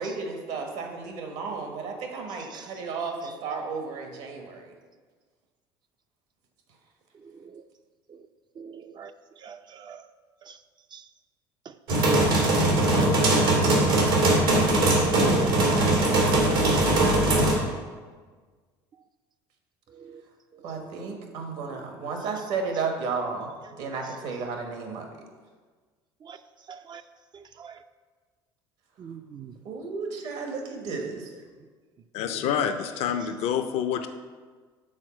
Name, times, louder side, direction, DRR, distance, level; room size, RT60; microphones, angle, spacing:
voice 1, 0.0-4.7 20.6-23.5 23.8-25.1 29.4-31.3 32.2-32.7, right 4 dB, 65° right, 3 dB, 1.4 m, -33 dB
voice 2, 8.6-9.1 9.4-10.0 10.5-10.6 10.9-11.0 15.7-16.3 19.9-20.2 26.2-26.4 26.7-27.0 27.3-27.8 29.0-29.5, right 7 dB, 35° right, 9 dB, 0.5 m, -45 dB
sound 1, 11.9-17.5, right 2 dB, 90° right, 2.4 m, -21 dB
voice 3, 32.1-34.1, left 8 dB, 60° left, 7 dB, 0.6 m, -27 dB
6.4 x 4.2 x 6.3 m, 1.5 s
hypercardioid pair, 75°, 12 cm